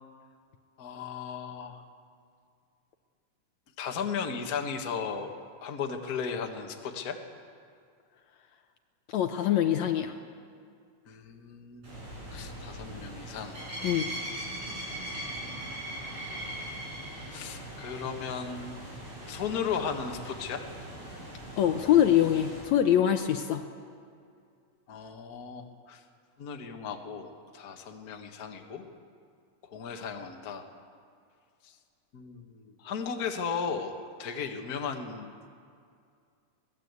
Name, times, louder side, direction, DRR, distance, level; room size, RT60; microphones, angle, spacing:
voice 1, 0.8-1.8 3.8-5.3 5.6-7.2 11.1-12.0 12.3-13.6 17.3-18.8 19.3-20.6 24.9-26.0 26.4-28.8 29.6-30.7 31.6-31.7 32.1-35.3, left 6 dB, 40° left, 4 dB, 1.5 m, -36 dB
voice 2, 9.1-10.1 13.8-14.1 21.6-23.6, left 11 dB, 70° left, 7 dB, 2.0 m, -24 dB
sound 1, 11.8-22.6, right 1 dB, 60° right, 9.2 m, -40 dB
23.0 x 19.0 x 8.3 m, 2.3 s
omnidirectional pair, 3.6 m